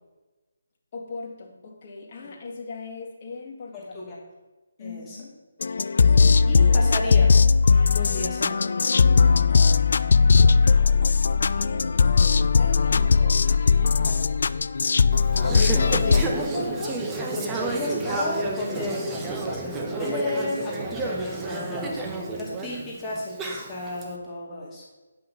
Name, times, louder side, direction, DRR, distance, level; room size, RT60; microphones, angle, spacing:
voice 1, 0.9-4.2 4.8-5.4 10.4-14.1, left 4 dB, 40° left, 0 dB, 2.0 m, -40 dB
voice 2, 4.8-5.2 6.5-7.5 7.9-8.7 14.0-14.3 15.5-24.8, left 2 dB, 15° left, -6 dB, 2.3 m, -33 dB
sound 1, 5.6-16.2, left 5 dB, 60° left, 0.3 m, -19 dB
Conversation / Chatter, 15.1-24.0, right 3 dB, 15° right, 1.0 m, -31 dB
9.8 x 5.8 x 5.5 m, 1.2 s
figure-of-eight pair, 150°, 0 cm